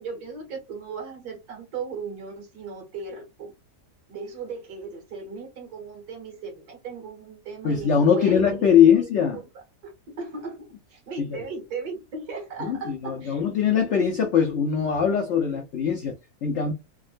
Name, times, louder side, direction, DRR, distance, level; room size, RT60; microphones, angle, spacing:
voice 1, 0.0-3.5 4.1-13.4 13.9-14.0 15.3-15.4, right 4 dB, 65° right, 1.7 m, -37 dB
voice 2, 7.6-9.4 11.2-11.4 12.6-16.1 16.4-16.7, left 7 dB, 70° left, 0.6 m, -21 dB
3.5 x 2.1 x 2.4 m
omnidirectional pair, 1.8 m